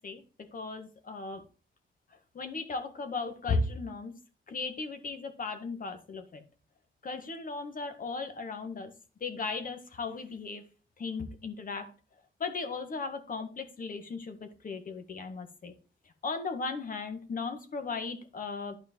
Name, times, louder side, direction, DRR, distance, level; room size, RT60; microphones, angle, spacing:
voice 1, 0.0-1.4 2.3-4.1 4.5-6.4 7.0-8.9 9.2-10.6 11.0-11.9 12.4-15.7 16.2-18.8, left 4 dB, 45° left, 7 dB, 1.9 m, -36 dB
12.0 x 4.9 x 4.6 m, 0.36 s
wide cardioid pair, 135°, 20 cm